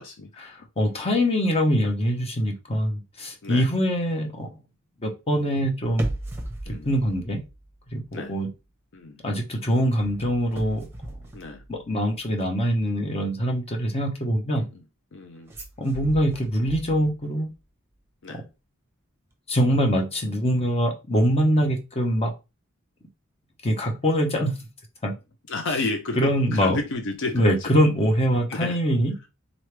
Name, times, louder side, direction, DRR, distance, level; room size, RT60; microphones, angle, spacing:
voice 1, 0.5-4.5 5.0-6.1 6.8-7.4 7.9-8.5 9.2-10.9 11.7-14.6 15.8-17.5 19.5-22.3 23.6-24.5 25.0-25.1 26.2-26.8 27.3-29.1, equal, 30° left, 0.9 m, -23 dB
sound 1, 5.8-8.1 8.4-8.7 10.0-12.2 15.5-17.4 17.7-17.8, right 1 dB, 10° right, 1.0 m, -37 dB
voice 2, 15.1-15.5 18.2-18.4 25.5-27.7 28.5-28.8, left 3 dB, 65° left, 0.6 m, -31 dB
3.9 x 3.1 x 3.3 m
head